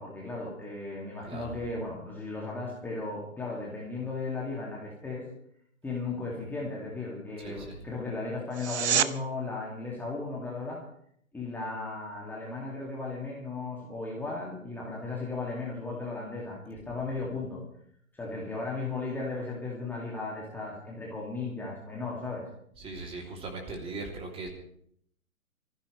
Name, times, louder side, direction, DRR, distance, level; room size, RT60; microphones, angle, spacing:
voice 1, 0.0-5.3 5.8-10.8 11.3-17.6 18.1-22.5, left 3 dB, 5° left, -4 dB, 2.4 m, -36 dB
voice 2, 7.4-7.8 22.8-24.5, right 3 dB, 15° right, 1 dB, 3.1 m, -39 dB
sound 1, 8.5-9.1 20.5-20.6, right 8 dB, 55° right, 1.0 m, -26 dB
25.0 x 15.0 x 3.3 m, 0.67 s
figure-of-eight pair, 125°, 42 cm